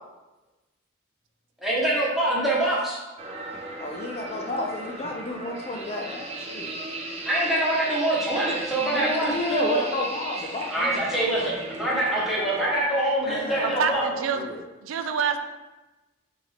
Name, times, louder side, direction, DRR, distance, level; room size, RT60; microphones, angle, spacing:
voice 1, 1.6-3.0 7.2-9.8 10.7-14.1, right 1 dB, ahead, -7 dB, 1.0 m, -25 dB
sound 1, 3.2-12.8, right 2 dB, 30° right, 0.5 m, -36 dB
voice 2, 3.8-6.7 8.9-11.5 13.3-14.6, left 2 dB, 30° left, 1 dB, 0.3 m, -32 dB
voice 3, 13.6-14.5 14.8-15.4, right 6 dB, 90° right, 7 dB, 0.4 m, -26 dB
6.0 x 2.6 x 3.2 m, 1.1 s
head